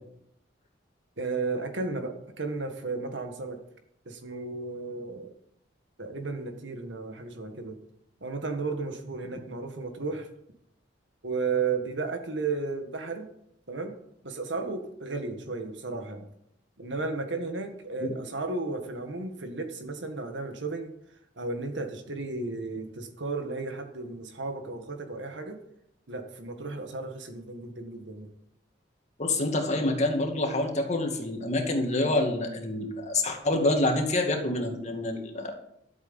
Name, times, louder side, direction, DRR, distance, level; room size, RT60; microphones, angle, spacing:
voice 1, 1.2-3.6 4.1-5.3 6.0-7.8 8.2-10.3 11.2-13.3 13.7-13.9 14.2-16.3 16.8-20.9 21.4-25.6 26.1-28.3, right 3 dB, 75° right, 6 dB, 1.9 m, -34 dB
voice 2, 29.2-35.5, left 2 dB, 40° left, 3 dB, 2.2 m, -27 dB
13.0 x 7.9 x 7.1 m, 0.76 s
head